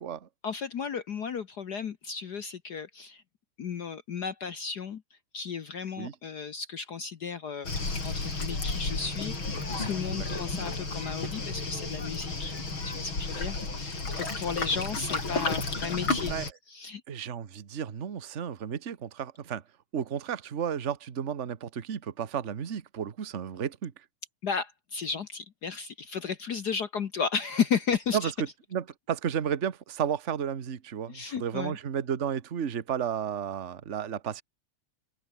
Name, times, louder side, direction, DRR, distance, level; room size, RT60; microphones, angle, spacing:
voice 1, 0.4-3.2 3.6-5.0 5.3-7.7 8.0-12.5 12.8-16.3 16.7-17.0 24.4-28.3 31.1-31.8, left 6 dB, 65° left, 1.0 m, -34 dB
Waves surf, 7.6-16.5, left 3 dB, 40° left, 6.2 m, -32 dB
voice 2, 16.2-16.5 17.1-19.6 19.9-23.9 28.1-34.4, right 8 dB, 50° right, 0.8 m, -33 dB
open air
omnidirectional pair, 3.3 m